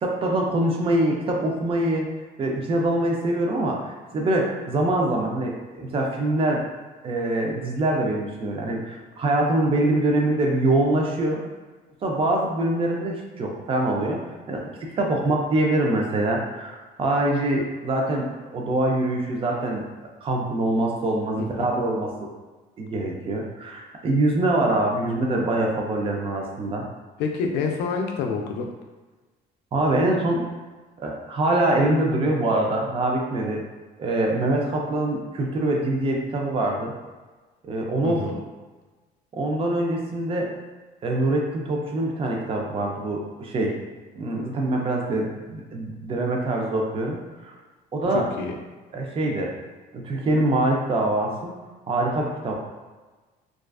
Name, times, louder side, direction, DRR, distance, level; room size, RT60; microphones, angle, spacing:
voice 1, 0.0-2.1 2.4-6.6 7.0-11.4 12.0-14.2 14.5-18.3 18.5-19.8 20.2-22.3 22.8-26.9 29.7-30.4 31.0-33.6 34.0-36.9 37.6-38.3 39.3-40.5 41.0-43.7 44.1-47.5 47.9-48.3 48.9-49.5 49.9-51.6 51.9-52.5, right 1 dB, 35° right, 0 dB, 0.4 m, -24 dB
voice 2, 21.4-21.7 27.2-28.7 38.0-38.3 48.1-48.5, left 5 dB, 85° left, 3 dB, 0.4 m, -27 dB
2.4 x 2.3 x 2.3 m, 1.3 s
cardioid pair, 110°, 17 cm